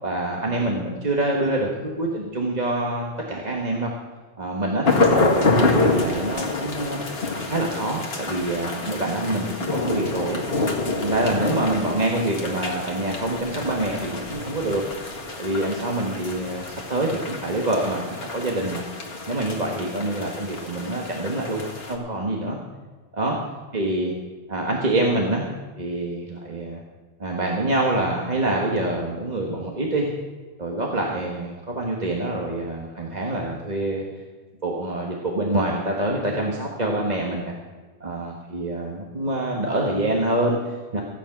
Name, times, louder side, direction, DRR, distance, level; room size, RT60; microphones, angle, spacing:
voice 1, 0.0-3.9 4.4-7.0 7.5-10.4 11.0-14.8 15.4-18.8 19.3-21.6 21.9-22.6 23.2-23.4 23.7-24.1 24.5-25.5 25.8-26.8 27.2-30.1 30.6-34.0 34.6-37.5 38.0-41.0, right 1 dB, 40° right, -1 dB, 1.5 m, -26 dB
sound 1, 4.9-21.9, left 3 dB, 60° left, 2.1 m, -27 dB
15.5 x 9.2 x 6.0 m, 1.4 s
omnidirectional pair, 1.2 m